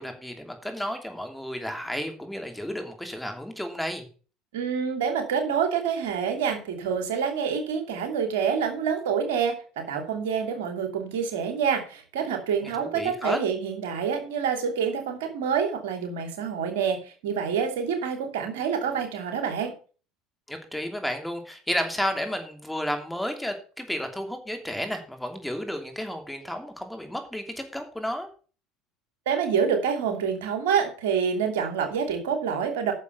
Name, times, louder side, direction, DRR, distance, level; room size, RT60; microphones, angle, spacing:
voice 1, 0.0-4.0 12.6-13.4 20.5-28.3, equal, 5° left, 5 dB, 3.0 m, -32 dB
voice 2, 4.5-19.7 29.3-32.9, right 7 dB, 80° right, 5 dB, 2.7 m, -27 dB
9.6 x 7.0 x 6.8 m, 0.37 s
hypercardioid pair, 80°, 0 cm